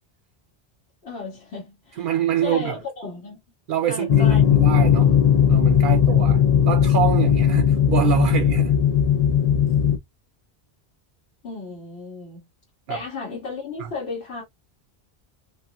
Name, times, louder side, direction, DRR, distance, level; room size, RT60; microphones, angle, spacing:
voice 1, 1.0-2.1 2.4-3.4 3.9-4.4 11.4-12.4 12.9-14.4, left 4 dB, 70° left, 2.0 m, -34 dB
voice 2, 2.0-2.8 3.7-5.2 5.5-8.8 12.9-13.0 13.8-13.9, right 10 dB, 60° right, 0.6 m, -25 dB
sound 1, 4.1-10.0, left 8 dB, 55° left, 0.5 m, -17 dB
5.6 x 2.1 x 2.3 m
omnidirectional pair, 1.1 m